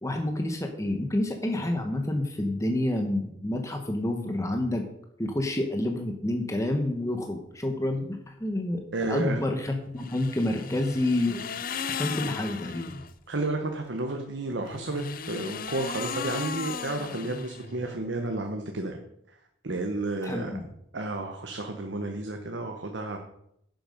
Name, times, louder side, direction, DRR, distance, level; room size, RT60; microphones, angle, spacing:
voice 1, 0.0-4.8 5.2-11.5 12.0-12.9 20.2-20.7, left 1 dB, 20° left, 4 dB, 1.1 m, -28 dB
voice 2, 8.9-9.4 13.3-19.1 19.6-20.5 20.9-23.2, right 2 dB, 90° right, 3 dB, 1.2 m, -32 dB
sound 1, 10.0-13.1 14.6-17.9, left 6 dB, 55° left, 0.6 m, -36 dB
10.5 x 7.7 x 5.3 m, 0.76 s
head